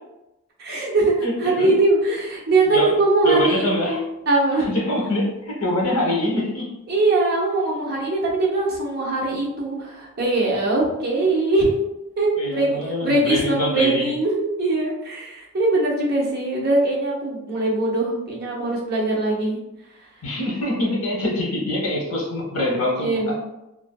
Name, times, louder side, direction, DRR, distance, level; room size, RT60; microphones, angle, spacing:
voice 1, 0.6-1.1 1.4-4.0 4.3-4.7 6.9-11.9 12.2-19.6 23.0-23.4, right 2 dB, 45° right, -4 dB, 0.7 m, -21 dB
voice 2, 1.2-1.7 2.7-2.9 3.2-4.0 4.7-6.8 12.4-14.1 20.2-23.4, left 1 dB, 85° left, -1 dB, 0.8 m, -24 dB
2.6 x 2.4 x 2.2 m, 0.92 s
head